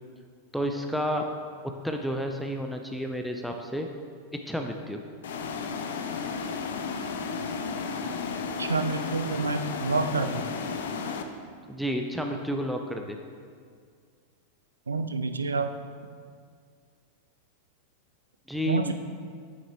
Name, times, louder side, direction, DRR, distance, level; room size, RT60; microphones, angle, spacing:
voice 1, 0.5-1.2 1.8-3.9 4.5-5.0 11.7-13.2 18.5-18.9, equal, ahead, 3 dB, 0.6 m, -30 dB
sound 1, 5.2-11.2, left 5 dB, 60° left, 0.6 m, -33 dB
voice 2, 8.6-10.4 14.9-15.7 18.7-18.9, right 3 dB, 75° right, 9 dB, 0.4 m, -28 dB
9.6 x 8.6 x 3.0 m, 2.1 s
figure-of-eight pair, 90°, 0 cm